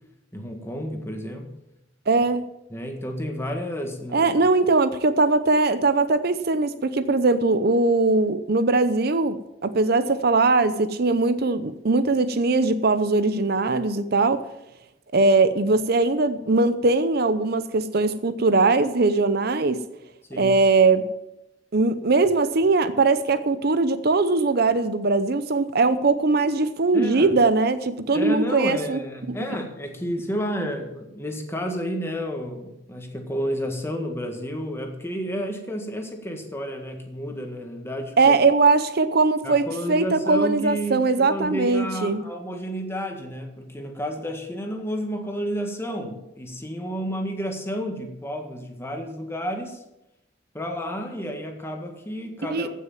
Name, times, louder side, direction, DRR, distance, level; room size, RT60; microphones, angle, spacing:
voice 1, 0.3-1.5 2.7-4.3 20.3-20.5 26.9-27.3 28.1-38.4 39.4-49.8 50.5-52.7, equal, 15° left, 3 dB, 1.8 m, -31 dB
voice 2, 2.1-2.5 4.1-14.4 15.1-19.8 20.4-21.0 21.7-29.0 29.3-29.4 38.2-42.2 52.5-52.7, right 3 dB, 60° right, 12 dB, 0.7 m, -20 dB
15.0 x 6.4 x 7.3 m, 0.91 s
head